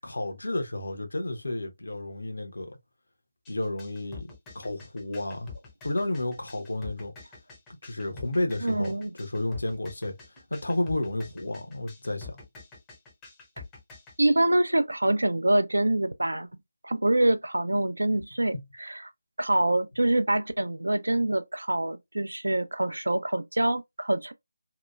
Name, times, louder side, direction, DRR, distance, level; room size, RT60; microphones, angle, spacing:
voice 1, 0.0-2.8 3.5-5.5 5.8-7.1 7.8-10.1 10.5-12.4 18.1-18.2 18.5-18.6, left 1 dB, 65° left, 0.7 m, -31 dB
sound 1, 3.4-14.1, left 4 dB, 10° left, 0.6 m, -46 dB
voice 2, 8.6-9.1 14.2-16.5 16.8-19.0 19.4-24.3, right 1 dB, 75° right, 0.4 m, -25 dB
2.8 x 2.2 x 2.2 m
figure-of-eight pair, 155°, 0 cm